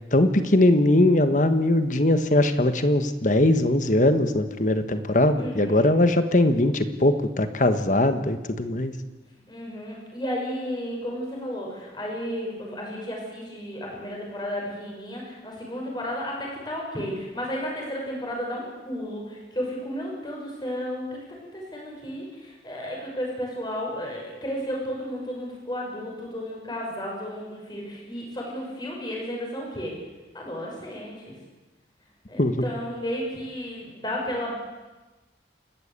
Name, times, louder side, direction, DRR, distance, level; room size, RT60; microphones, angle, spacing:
voice 1, 0.1-8.9 32.4-32.5, left 1 dB, 45° left, 9 dB, 1.4 m, -20 dB
voice 2, 5.4-5.9 9.5-29.9 30.3-31.3 32.3-34.5, equal, 25° left, -1 dB, 6.1 m, -33 dB
29.0 x 13.0 x 8.3 m, 1.2 s
head